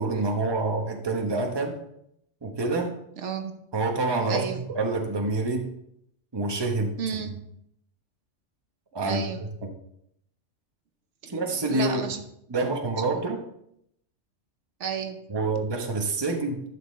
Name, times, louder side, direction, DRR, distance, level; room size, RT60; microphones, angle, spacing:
voice 1, 0.0-1.7 2.4-2.9 3.7-5.7 6.3-7.0 8.9-9.3 9.6-9.7 11.3-12.0 12.5-13.4 15.3-16.6, right 3 dB, 20° right, 3 dB, 0.9 m, -27 dB
voice 2, 3.2-3.6 4.3-4.6 7.0-7.3 9.0-9.5 11.2-12.2 13.1-13.4 14.8-15.2, right 6 dB, 70° right, 7 dB, 1.1 m, -32 dB
11.5 x 6.1 x 3.2 m, 0.75 s
omnidirectional pair, 1.3 m